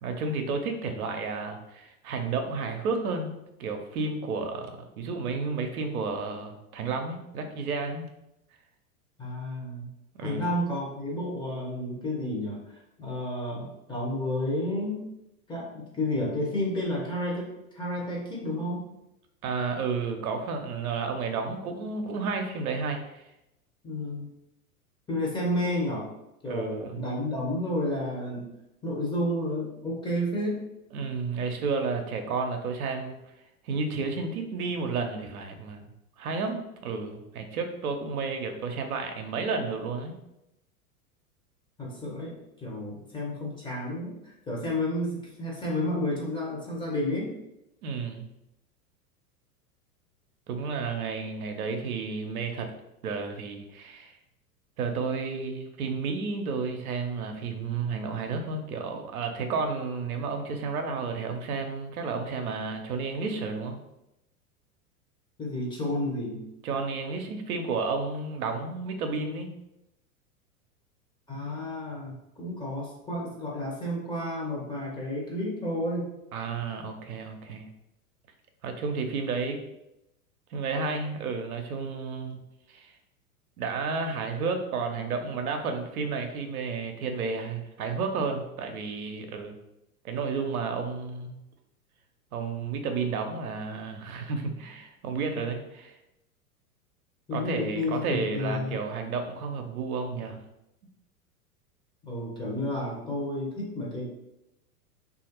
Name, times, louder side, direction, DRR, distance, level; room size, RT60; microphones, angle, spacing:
voice 1, 0.0-8.1 10.1-10.5 19.4-23.2 26.5-27.1 30.9-33.1 33.6-35.8 36.2-40.1 47.8-48.3 50.5-52.7 53.0-54.2 54.8-63.8 66.6-69.5 76.3-77.7 78.6-79.6 80.5-82.4 82.7-82.9 83.6-89.6 90.0-91.3 92.3-96.0 97.3-100.4, right 4 dB, 70° right, 5 dB, 0.6 m, -32 dB
voice 2, 9.2-9.9 10.2-12.6 13.0-15.1 15.5-18.9 23.8-24.3 25.1-26.1 26.4-28.4 28.8-30.6 41.8-44.1 44.5-47.3 65.4-66.4 71.3-76.1 97.3-98.8 102.0-104.1, left 1 dB, 10° left, -4 dB, 0.8 m, -31 dB
3.1 x 2.4 x 2.8 m, 0.87 s
hypercardioid pair, 95°, 45 cm